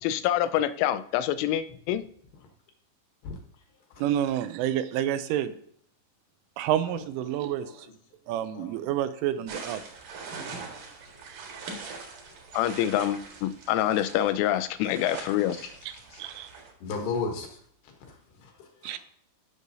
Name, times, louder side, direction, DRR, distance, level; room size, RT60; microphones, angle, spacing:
voice 1, 0.0-2.0 12.5-15.6, left 12 dB, 85° left, 12 dB, 3.1 m, -26 dB
voice 2, 4.0-5.5 6.6-7.7 8.3-9.8 11.3-11.6 16.2-16.5 18.8-19.0, right 11 dB, 85° right, 11 dB, 3.2 m, -29 dB
voice 3, 7.4-7.9 8.5-8.7 11.9-12.0 15.6-15.7 16.1-16.2 16.8-17.6 17.8-19.0, left 4 dB, 70° left, 3 dB, 2.8 m, -36 dB
sound 1, 9.5-16.7, right 4 dB, 60° right, 2.4 m, -42 dB
15.0 x 6.2 x 2.7 m, 0.62 s
omnidirectional pair, 5.6 m